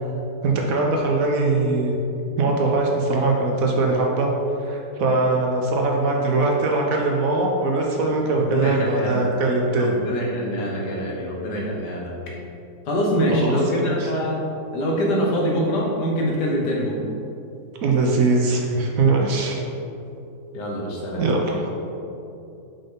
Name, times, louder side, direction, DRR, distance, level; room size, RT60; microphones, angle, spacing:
voice 1, 0.4-1.9 2.4-4.3 4.6-10.0 13.3-13.6 13.8-14.1 17.8-19.6 21.2-21.7, right 3 dB, 65° right, 0 dB, 1.0 m, -21 dB
voice 2, 8.3-9.2 9.8-12.4 12.9-14.4 14.7-17.0 20.5-21.3, equal, 80° left, -2 dB, 1.7 m, -24 dB
5.4 x 5.3 x 3.7 m, 2.7 s
omnidirectional pair, 1.8 m